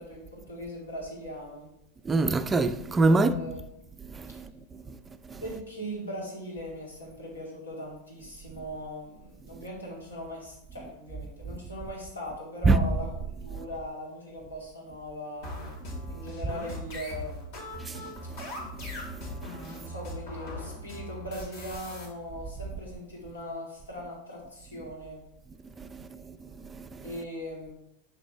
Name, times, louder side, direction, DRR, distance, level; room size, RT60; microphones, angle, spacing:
voice 1, 0.0-1.7 3.1-3.6 4.3-4.4 5.4-15.5 16.1-17.7 19.7-25.2 27.0-27.7, equal, 80° left, 2.4 m, -39 dB
voice 2, 2.0-3.3 4.0-5.0 5.3-5.4 9.5-9.6 12.6-12.8 13.5-13.6 15.9-16.0 17.8-19.9 25.8-27.1, right 3 dB, 15° right, 0.4 m, -28 dB
sound 1, 15.4-22.1, left 1 dB, 55° left, 2.1 m, -39 dB
6.2 x 5.9 x 3.3 m
figure-of-eight pair, 90°, 0 cm